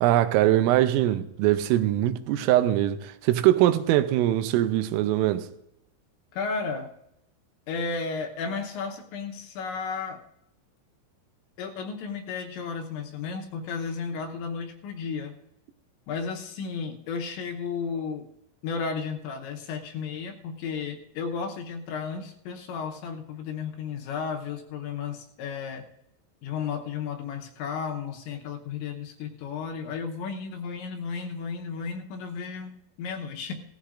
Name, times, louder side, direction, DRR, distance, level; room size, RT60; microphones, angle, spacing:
voice 1, 0.0-5.5, right 13 dB, 90° right, 3.3 m, -22 dB
voice 2, 6.3-6.9 7.7-10.2 11.6-15.3 16.1-18.2 18.6-25.9 26.4-33.5, left 5 dB, 75° left, 3.0 m, -33 dB
17.5 x 14.5 x 2.5 m
omnidirectional pair, 5.7 m